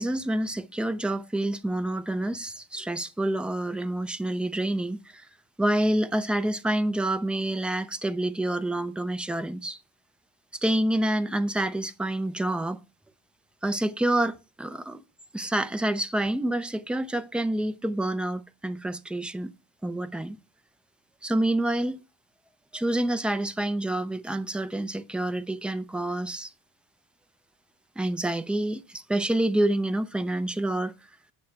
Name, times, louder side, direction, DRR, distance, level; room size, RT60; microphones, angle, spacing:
voice 1, 0.0-5.3 5.6-9.8 10.6-12.8 13.6-15.0 15.3-19.5 19.8-20.4 21.2-22.0 22.7-26.5 28.0-30.9, right 1 dB, ahead, 0.5 m, -27 dB
8.4 x 6.3 x 4.5 m
cardioid pair, 130°, 43 cm